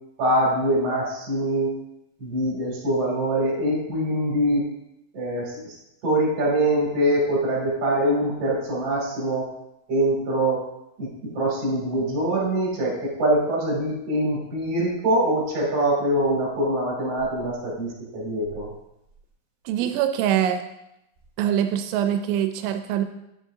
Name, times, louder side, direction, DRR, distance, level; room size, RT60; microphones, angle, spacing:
voice 1, 0.2-1.8 2.2-4.7 5.1-5.7 6.0-9.5 9.9-10.6 11.0-11.1 11.3-18.7, right 1 dB, 40° right, -5 dB, 3.1 m, -24 dB
voice 2, 19.7-20.6 21.4-23.1, right 10 dB, 90° right, 7 dB, 2.7 m, -23 dB
9.8 x 6.3 x 2.6 m, 0.85 s
omnidirectional pair, 4.8 m